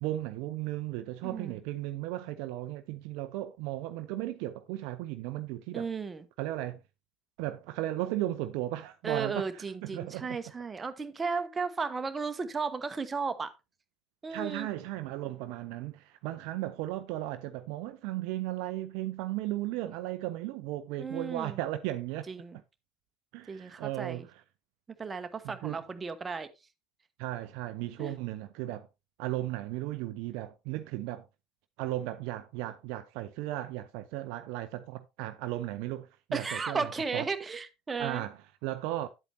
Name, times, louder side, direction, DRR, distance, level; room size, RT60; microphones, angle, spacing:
voice 1, 0.0-5.9 6.4-6.8 7.4-10.4 14.3-22.3 23.3-24.4 25.6-25.8 27.2-28.9 29.2-31.3 31.8-37.3 38.0-39.1, right 15 dB, 55° right, 0.5 m, -36 dB
voice 2, 1.2-1.6 5.7-6.2 9.0-13.5 14.2-14.7 21.0-21.6 22.3-22.6 23.5-24.2 25.0-26.5 28.0-28.1 36.3-38.2, right 4 dB, 20° right, 1.0 m, -34 dB
10.0 x 8.2 x 2.8 m
figure-of-eight pair, 70°, 0 cm